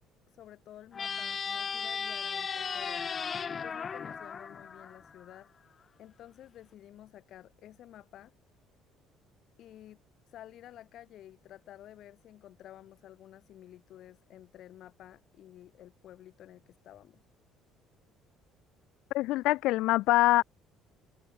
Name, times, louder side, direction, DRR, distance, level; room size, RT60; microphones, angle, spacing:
voice 1, 0.3-3.1 3.5-5.5 6.0-8.3 9.6-10.0 10.3-17.3, left 12 dB, 50° left, 7.7 m, -52 dB
sound 1, 0.9-5.4, left 6 dB, 25° left, 3.5 m, -36 dB
voice 2, 19.1-20.4, left 18 dB, 70° left, 0.5 m, -24 dB
cardioid pair, 170°, 0 cm